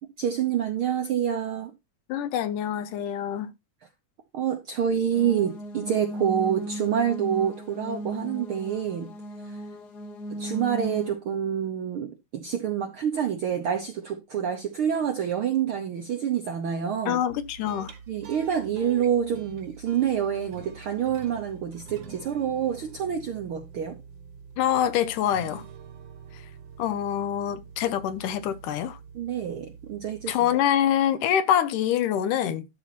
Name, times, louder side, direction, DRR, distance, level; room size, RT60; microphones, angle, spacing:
voice 1, 0.2-1.7 4.3-9.1 9.5-9.6 10.3-17.2 18.1-24.0 29.1-30.4, right 8 dB, 75° right, 1.2 m, -27 dB
voice 2, 2.1-3.5 17.1-17.9 24.6-25.6 26.8-29.0 30.3-32.7, left 10 dB, 90° left, 2.4 m, -25 dB
sound 1, 5.1-11.1, right 1 dB, 75° left, 0.9 m, -36 dB
sound 2, 17.3-30.9, right 6 dB, 50° right, 1.4 m, -46 dB
12.5 x 4.3 x 4.2 m
omnidirectional pair, 3.6 m